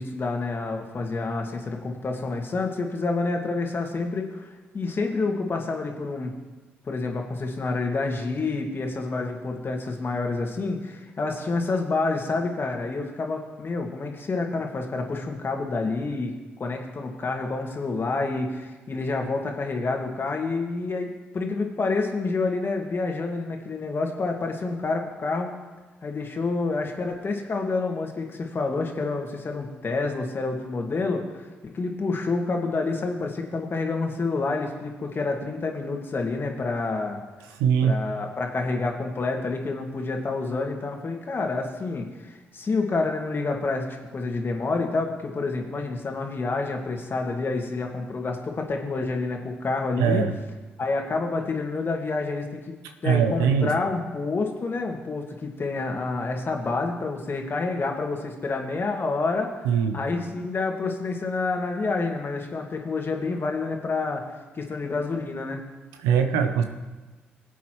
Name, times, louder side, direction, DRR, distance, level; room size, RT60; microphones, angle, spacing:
voice 1, 0.0-6.3 6.8-16.3 16.6-25.5 26.0-37.2 37.8-43.9 44.1-50.3 50.8-52.8 53.0-59.5 59.9-64.2 64.5-65.6, left 3 dB, 45° left, 2 dB, 2.0 m, -28 dB
voice 2, 37.6-38.0 50.0-50.3 53.0-53.7 59.6-60.0 66.0-66.6, right 7 dB, 80° right, 7 dB, 0.8 m, -21 dB
19.5 x 8.1 x 3.1 m, 1.2 s
hypercardioid pair, 40°, 6 cm